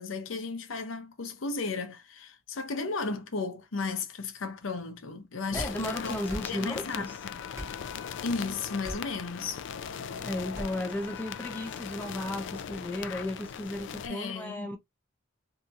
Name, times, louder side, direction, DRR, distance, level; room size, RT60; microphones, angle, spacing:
voice 1, 0.0-6.2 6.4-7.1 8.2-9.7 14.0-14.7, left 4 dB, 80° left, 0.7 m, -34 dB
voice 2, 5.5-7.2 10.1-14.8, left 1 dB, 10° left, 0.5 m, -35 dB
sound 1, 5.5-5.8 6.3-6.5 7.5-7.8 8.8-9.1 10.5-10.7, equal, 15° right, 1.0 m, -38 dB
sound 2, 5.6-14.1, left 7 dB, 65° left, 0.3 m, -39 dB
2.8 x 2.6 x 2.4 m
head